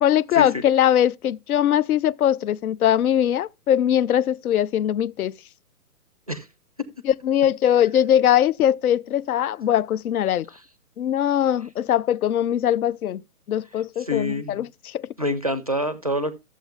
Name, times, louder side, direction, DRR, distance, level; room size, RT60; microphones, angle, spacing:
voice 1, 0.0-5.3 7.0-10.5 11.0-13.2 13.5-15.1, left 10 dB, 70° left, 0.6 m, -21 dB
voice 2, 14.0-14.7 15.2-16.3, left 1 dB, 25° right, 0.4 m, -26 dB
12.5 x 7.4 x 3.4 m
hypercardioid pair, 170°, 45 cm